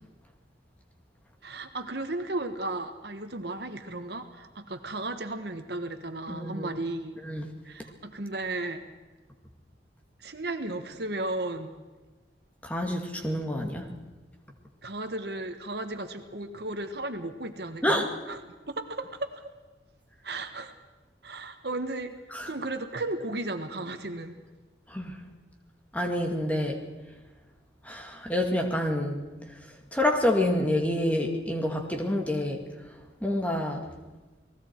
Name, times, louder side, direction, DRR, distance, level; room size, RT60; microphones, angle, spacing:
voice 1, 1.4-7.2 7.6-8.8 10.2-11.7 14.8-18.4 18.7-19.3 20.2-20.7 21.2-22.2 22.5-24.4, right 2 dB, 60° right, 7 dB, 1.4 m, -34 dB
voice 2, 6.3-6.8 7.2-7.5 12.6-13.9 17.8-18.1 22.3-22.5 24.9-25.2 25.9-26.8 27.8-29.3 29.9-32.6 33.2-33.8, left 1 dB, 10° left, 1 dB, 2.1 m, -28 dB
29.5 x 19.5 x 4.6 m, 1.2 s
head